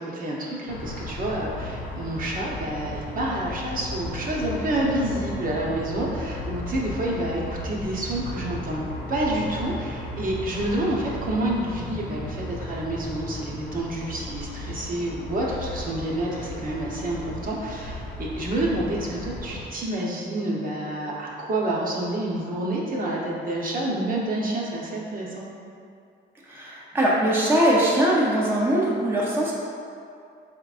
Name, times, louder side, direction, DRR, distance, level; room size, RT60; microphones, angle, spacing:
voice 1, 0.0-8.8 9.1-25.4, right 1 dB, 45° right, -4 dB, 0.8 m, -28 dB
sound 1, 0.7-19.7, left 1 dB, 90° left, 0.7 m, -35 dB
voice 2, 26.4-29.5, right 1 dB, 10° right, -5 dB, 0.6 m, -21 dB
4.4 x 3.6 x 2.4 m, 2.4 s
cardioid pair, 90°, 20 cm